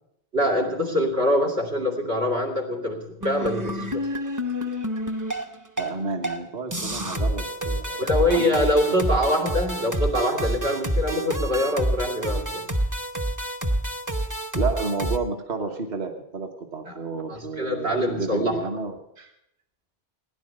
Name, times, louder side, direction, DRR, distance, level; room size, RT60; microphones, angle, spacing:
voice 1, 0.3-4.1 8.0-12.7 16.9-17.0 17.3-18.5, left 1 dB, 85° right, 4 dB, 2.8 m, -24 dB
sound 1, 3.2-5.9 6.2-6.4 6.7-15.2, right 1 dB, 20° right, 0.8 m, -28 dB
voice 2, 5.8-8.6 14.5-19.3, right 4 dB, 45° right, 3 dB, 1.4 m, -31 dB
17.0 x 10.0 x 6.7 m, 0.79 s
omnidirectional pair, 1.1 m